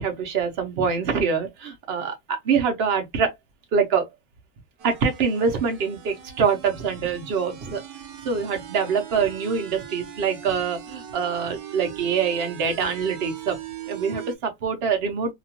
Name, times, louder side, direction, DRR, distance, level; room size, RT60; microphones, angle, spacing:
voice 1, 0.0-3.3 3.7-4.1 4.8-7.8 8.2-13.6 13.9-15.3, right 6 dB, 55° right, 0.7 m, -25 dB
sound 1, 4.8-14.4, right 11 dB, 85° right, 1.3 m, -40 dB
2.8 x 2.3 x 2.8 m
omnidirectional pair, 1.8 m